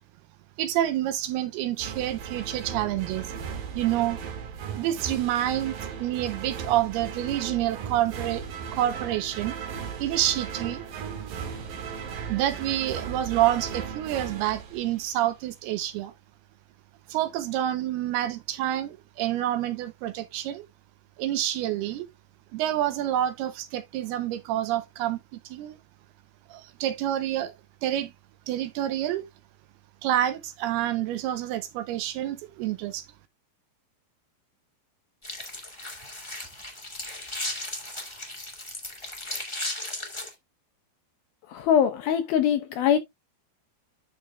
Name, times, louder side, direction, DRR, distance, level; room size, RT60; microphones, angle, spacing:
voice 1, 0.6-3.3 3.8-4.2 4.8-9.6 10.0-10.8 12.3-16.1 17.1-20.7 21.2-22.1 22.5-25.8 26.5-27.5 27.8-28.1 28.5-29.3 30.0-33.1, right 12 dB, 80° right, 2.5 m, -28 dB
sound 1, 1.8-15.4, right 7 dB, 60° right, 2.8 m, -37 dB
sound 2, 35.2-40.3, left 1 dB, 30° left, 0.4 m, -36 dB
voice 2, 41.5-43.0, left 8 dB, 75° left, 2.3 m, -22 dB
12.0 x 5.2 x 2.3 m
omnidirectional pair, 4.9 m